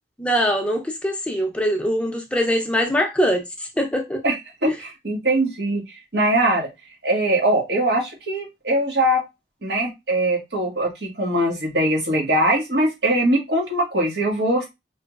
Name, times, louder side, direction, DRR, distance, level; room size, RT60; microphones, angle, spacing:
voice 1, 0.2-4.2, equal, 5° left, 0.6 m, -22 dB
voice 2, 4.6-5.8 6.1-6.7 7.0-9.2 9.6-14.7, right 1 dB, 70° right, 1.5 m, -21 dB
4.8 x 3.0 x 2.4 m
head